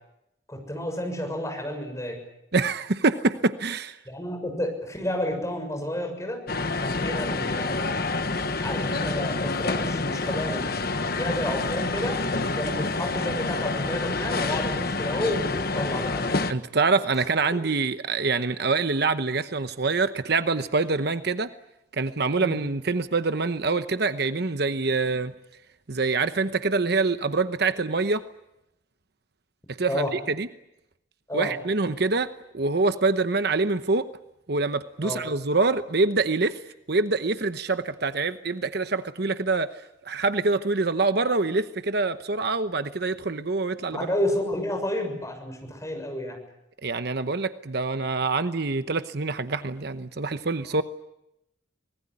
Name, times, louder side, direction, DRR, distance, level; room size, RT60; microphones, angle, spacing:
voice 1, 0.5-2.2 4.1-6.4 6.8-8.2 8.6-10.6 11.1-16.6 17.2-17.3 22.3-22.6 29.9-30.1 31.3-31.5 35.0-35.2 43.9-46.4, left 1 dB, 15° left, 3 dB, 6.9 m, -31 dB
voice 2, 2.5-4.0 16.5-21.5 21.9-25.3 25.9-28.2 29.8-30.5 31.3-34.1 34.5-36.6 36.9-44.1 46.8-50.8, right 3 dB, 55° right, 11 dB, 1.0 m, -25 dB
sound 1, 6.5-16.5, left 3 dB, 55° left, 1.3 m, -28 dB
25.0 x 20.0 x 9.9 m, 0.86 s
head